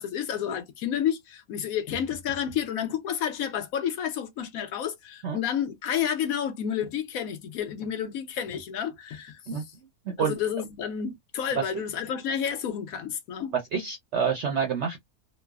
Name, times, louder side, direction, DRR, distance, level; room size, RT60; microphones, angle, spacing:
voice 1, 0.0-9.6 10.2-13.5, left 9 dB, 70° left, 1.0 m, -30 dB
voice 2, 13.5-15.0, right 6 dB, 65° right, 0.7 m, -27 dB
3.1 x 2.0 x 2.2 m
omnidirectional pair, 1.7 m